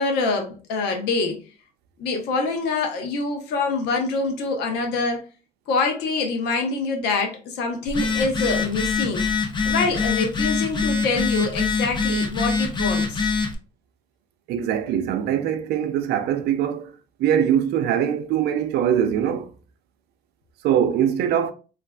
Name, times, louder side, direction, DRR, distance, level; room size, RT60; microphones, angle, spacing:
voice 1, 0.0-1.4 2.0-5.2 5.7-9.3 9.6-13.3, left 3 dB, 90° left, 0.7 m, -25 dB
Telephone, 7.9-13.5, left 4 dB, 25° left, 0.5 m, -24 dB
voice 2, 14.5-16.9 17.2-19.5 20.6-21.5, right 9 dB, 75° right, 0.4 m, -22 dB
3.1 x 2.5 x 2.2 m
cardioid pair, 110°, 17 cm